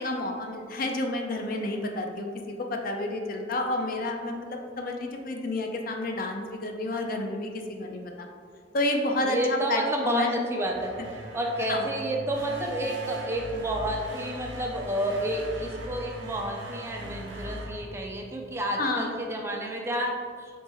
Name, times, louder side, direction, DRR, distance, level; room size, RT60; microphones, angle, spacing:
voice 1, 0.0-2.3 2.6-8.3 8.7-10.4 11.6-11.9 18.8-19.2, left 2 dB, 50° left, 3 dB, 0.4 m, -30 dB
voice 2, 9.2-10.9 11.3-20.1, right 1 dB, 15° right, 0 dB, 0.4 m, -30 dB
sound 1, 10.6-18.6, right 1 dB, 70° right, 0.7 m, -40 dB
4.0 x 3.2 x 3.4 m, 2.1 s
head